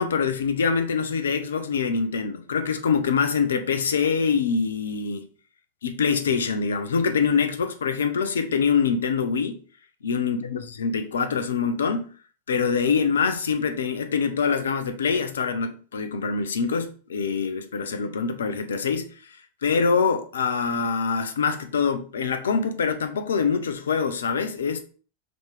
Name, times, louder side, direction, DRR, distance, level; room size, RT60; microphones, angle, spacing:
voice 1, 0.0-5.3 5.8-9.6 10.0-12.1 12.5-19.1 19.6-24.8, left 5 dB, 65° left, 0.6 m, -24 dB
5.2 x 2.9 x 3.4 m
figure-of-eight pair, 90°, 0 cm